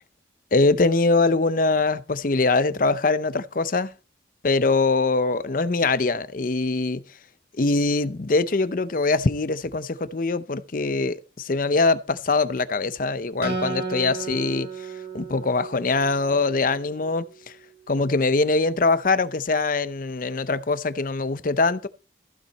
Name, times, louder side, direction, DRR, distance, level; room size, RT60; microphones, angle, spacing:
voice 1, 0.5-3.9 4.4-7.0 7.6-14.7 15.1-17.3 17.9-21.9, left 3 dB, 45° left, 0.6 m, -23 dB
Acoustic guitar, 13.4-16.9, right 3 dB, 55° right, 2.3 m, -33 dB
15.0 x 7.3 x 4.1 m
head